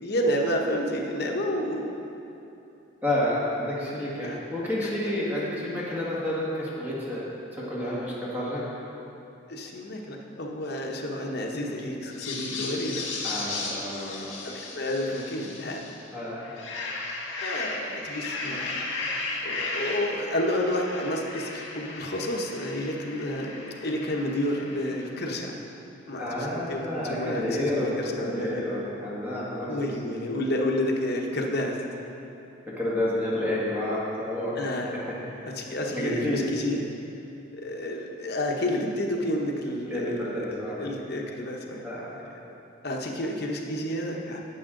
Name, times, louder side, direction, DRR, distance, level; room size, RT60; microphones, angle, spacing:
voice 1, 0.0-1.9 4.2-4.4 4.8-4.9 9.5-13.1 14.7-15.8 17.4-18.8 19.4-25.5 26.1-28.6 29.7-31.8 34.5-34.9 35.4-36.9 37.5-41.8 42.8-44.4, left 1 dB, 50° left, 0 dB, 1.0 m, -30 dB
voice 2, 3.0-7.2 7.7-8.7 13.2-14.4 16.1-16.5 26.2-29.9 32.8-34.6 35.3-35.5 35.9-36.4 39.9-40.8 41.8-42.1, left 1 dB, 10° right, -7 dB, 1.7 m, -30 dB
sound 1, 12.1-16.0 16.4-25.1, left 3 dB, 70° left, 1.5 m, -35 dB
11.0 x 8.4 x 3.8 m, 2.9 s
head